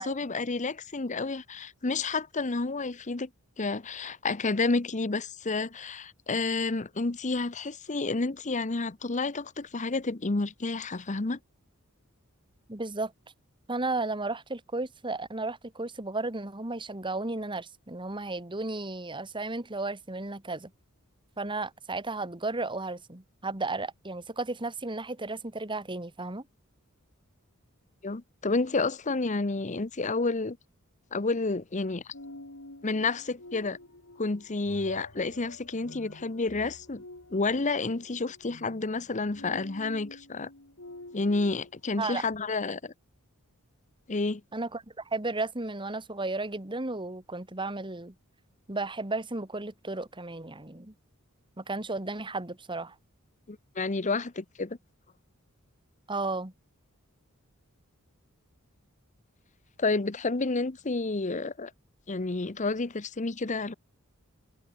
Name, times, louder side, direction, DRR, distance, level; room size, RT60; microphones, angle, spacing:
voice 1, 0.0-3.3 3.6-11.4 28.0-30.6 31.1-32.1 32.8-33.8 34.2-37.0 37.3-40.5 41.1-42.9 44.1-44.4 53.5-54.8 59.8-61.7 62.1-63.7, left 3 dB, 35° left, 0.9 m, -30 dB
voice 2, 12.7-13.1 13.7-20.7 21.4-26.4 42.0-42.2 44.5-48.1 48.7-50.9 51.6-53.0 56.1-56.5, right 2 dB, 20° right, 1.9 m, -34 dB
sound 1, 32.1-42.4, left 2 dB, 70° left, 4.1 m, -48 dB
head